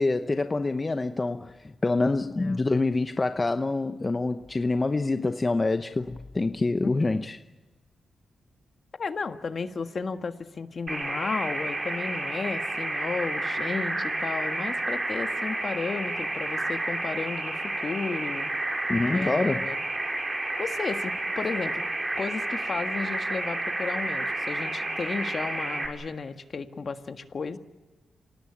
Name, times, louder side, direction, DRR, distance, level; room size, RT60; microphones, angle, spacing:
voice 1, 0.0-7.4 18.9-19.7, left 3 dB, 30° left, 0.9 m, -26 dB
voice 2, 6.8-7.2 9.0-18.5 19.1-19.8 20.6-21.8 22.2-27.6, left 4 dB, 50° left, 1.6 m, -33 dB
sound 1, 10.9-25.9, right 2 dB, 30° right, 4.8 m, -30 dB
26.5 x 18.5 x 8.6 m
cardioid pair, 80°, 0 cm